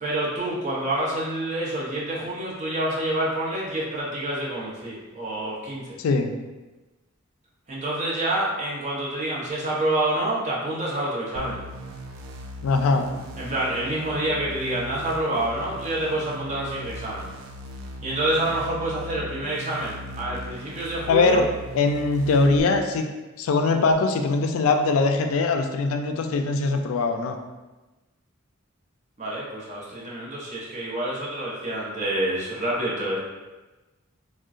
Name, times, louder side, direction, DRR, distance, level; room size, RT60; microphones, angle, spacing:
voice 1, 0.0-6.0 7.7-11.6 13.4-17.3 18.0-21.4 29.2-33.2, right 1 dB, 35° right, -6 dB, 0.7 m, -27 dB
voice 2, 6.0-6.3 12.6-13.1 21.1-21.5 21.7-23.1 23.4-27.4, left 3 dB, 90° left, 5 dB, 0.3 m, -21 dB
sound 1, 11.4-22.6, equal, 75° right, 0.3 m, -39 dB
3.7 x 2.1 x 2.4 m, 1.1 s
head